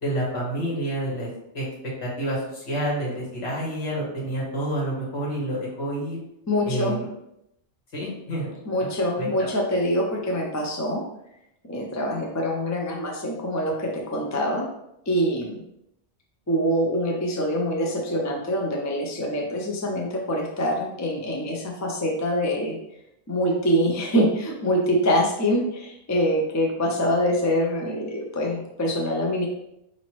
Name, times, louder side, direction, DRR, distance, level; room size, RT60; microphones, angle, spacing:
voice 1, 0.0-1.3 1.5-1.7 2.0-6.2 6.6-7.1 7.9-8.5 8.8-8.9 9.2-9.3, right 1 dB, 65° left, -5 dB, 1.8 m, -28 dB
voice 2, 6.5-7.0 8.7-11.0 11.7-14.7 15.1-15.6 16.5-22.8 23.3-29.5, equal, 25° left, 0 dB, 0.4 m, -25 dB
5.0 x 2.8 x 3.1 m, 0.82 s
omnidirectional pair, 1.2 m